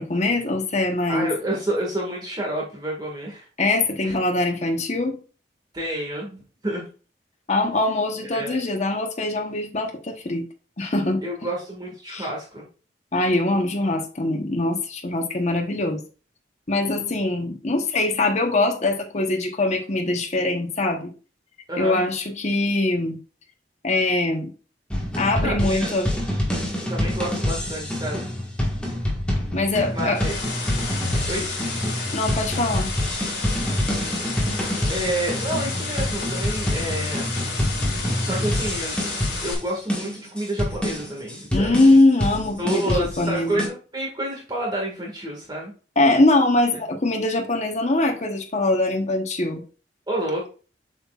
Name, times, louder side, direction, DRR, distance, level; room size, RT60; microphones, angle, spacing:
voice 1, 0.0-1.3 3.6-5.2 7.5-10.5 10.8-11.2 12.1-12.3 13.1-16.0 16.7-21.1 21.8-23.2 23.8-24.5 25.2-26.1 29.5-30.2 32.1-32.9 41.5-43.7 46.0-49.6, left 2 dB, 40° left, 1.0 m, -22 dB
voice 2, 1.1-3.4 4.0-4.1 5.7-6.9 7.6-7.7 8.3-8.6 11.2-12.7 21.7-22.0 25.4-25.9 26.9-28.3 29.9-30.4 31.3-31.5 34.9-37.3 38.2-39.0 39.4-41.8 42.6-45.7 50.1-50.5, right 1 dB, 25° right, 1.8 m, -29 dB
sound 1, 24.9-43.7, left 1 dB, 5° left, 1.5 m, -27 dB
sound 2, 29.8-39.5, left 4 dB, 60° left, 2.5 m, -32 dB
7.7 x 5.8 x 2.4 m
head